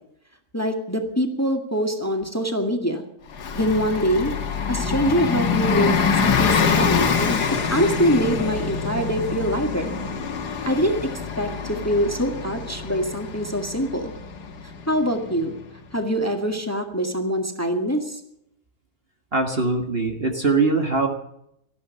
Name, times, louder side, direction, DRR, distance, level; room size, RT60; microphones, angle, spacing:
voice 1, 0.5-3.0 3.5-4.3 4.7-7.4 7.7-9.9 10.6-14.1 14.9-15.6 15.9-18.2, equal, 10° left, 5 dB, 2.0 m, -24 dB
Bus, 3.3-15.6, left 6 dB, 90° left, 2.0 m, -25 dB
voice 2, 19.3-21.1, right 3 dB, 40° right, 4 dB, 1.7 m, -21 dB
18.5 x 13.5 x 5.5 m, 0.75 s
omnidirectional pair, 1.7 m